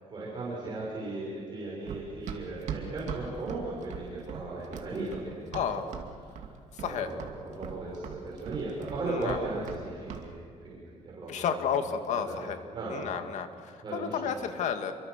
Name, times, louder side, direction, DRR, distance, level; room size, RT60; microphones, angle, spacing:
voice 1, 0.1-5.9 6.8-11.6 12.1-13.2 13.8-14.2, right 2 dB, 35° right, -5 dB, 6.7 m, -37 dB
Run, 1.9-6.1 6.4-6.9 7.2-9.8 10.1-10.3, right 8 dB, 70° right, 2.6 m, -39 dB
voice 2, 5.5-5.9 6.7-7.1 9.1-9.4 11.3-12.6 12.9-14.9, left 7 dB, 70° left, 7 dB, 2.1 m, -32 dB
28.5 x 23.5 x 6.6 m, 2.3 s
cardioid pair, 135°, 13 cm